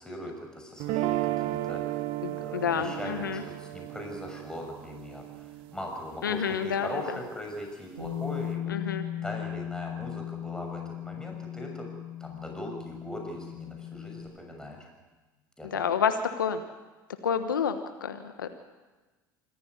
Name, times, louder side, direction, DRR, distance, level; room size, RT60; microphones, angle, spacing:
voice 1, 0.0-1.8 2.3-8.9 9.2-11.9 12.2-14.9 15.6-15.8, equal, 5° left, 1 dB, 6.1 m, -40 dB
sound 1, 0.8-6.9, right 15 dB, 60° right, 1.0 m, -34 dB
voice 2, 2.2-3.4 6.2-6.9 8.7-9.0 15.7-16.6 17.2-18.5, left 7 dB, 85° left, 9 dB, 1.2 m, -29 dB
Bass guitar, 8.0-14.2, left 11 dB, 90° right, 3.1 m, -37 dB
26.0 x 14.5 x 9.6 m, 1.2 s
hypercardioid pair, 70°, 11 cm